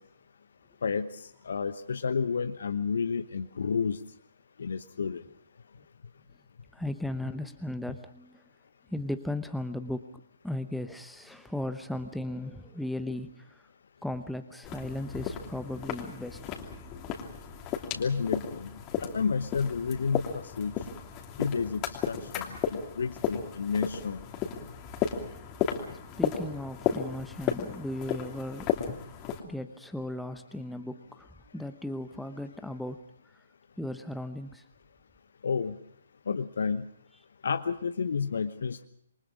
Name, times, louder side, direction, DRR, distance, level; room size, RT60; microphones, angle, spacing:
voice 1, 0.8-4.0 4.6-5.2 17.9-18.7 19.0-20.7 21.4-24.2 35.4-35.7 36.3-36.8 37.4-38.9, left 5 dB, 60° left, 9 dB, 1.1 m, -31 dB
voice 2, 6.7-8.4 8.9-10.1 10.4-13.6 14.0-16.4 25.9-28.7 29.4-31.3 31.5-33.0 33.8-34.6, left 1 dB, ahead, 9 dB, 0.9 m, -36 dB
sound 1, 14.6-29.4, left 8 dB, 25° left, 2.9 m, -34 dB
27.5 x 23.5 x 5.1 m, 0.68 s
figure-of-eight pair, 130°, 0 cm